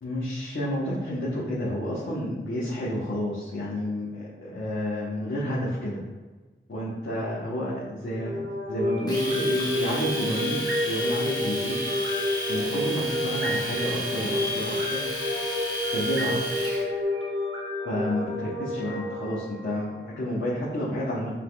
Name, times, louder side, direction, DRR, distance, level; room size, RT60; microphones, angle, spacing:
voice 1, 0.0-6.0 6.7-8.4 8.7-11.8 12.5-15.0 15.9-16.4 17.8-21.3, left 1 dB, 70° left, -8 dB, 1.1 m, -30 dB
sound 1, 8.1-20.2, left 1 dB, 90° right, 1.2 m, -30 dB
Domestic sounds home sounds, 9.1-16.8, equal, 20° left, 1.3 m, -33 dB
5.6 x 3.5 x 2.3 m, 1.2 s
wide cardioid pair, 55°, 20 cm